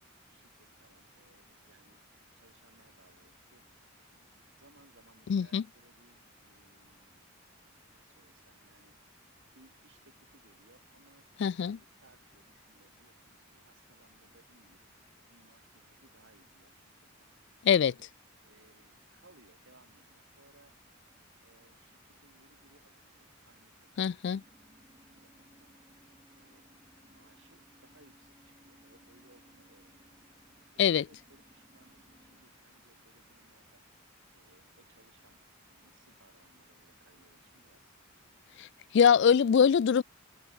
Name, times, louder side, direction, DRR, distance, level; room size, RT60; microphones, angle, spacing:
voice 1, 0.3-3.6 4.1-7.3 7.9-9.3 9.5-11.3 11.5-14.9 15.3-17.3 17.9-18.1 18.4-20.8 21.4-24.5 25.1-25.8 26.4-26.7 27.0-30.1 30.7-33.9 34.3-35.4 35.7-38.0, right 2 dB, 60° right, 5.3 m, -65 dB
voice 2, 5.3-5.6 11.4-11.8 17.6-17.9 24.0-24.4 30.8-31.0 38.6-38.7 38.9-40.0, left 7 dB, 55° left, 0.3 m, -23 dB
sound 1, 24.2-32.5, equal, 20° right, 3.0 m, -63 dB
head